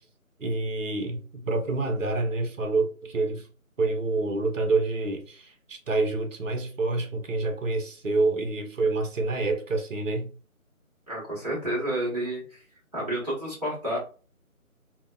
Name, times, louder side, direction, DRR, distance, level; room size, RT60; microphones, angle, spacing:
voice 1, 0.4-3.5 3.8-10.3, right 3 dB, 60° right, 0.7 m, -27 dB
voice 2, 11.1-12.6 12.9-14.0, right 1 dB, 25° right, 1.1 m, -30 dB
2.6 x 2.1 x 2.2 m
figure-of-eight pair, 160°, 44 cm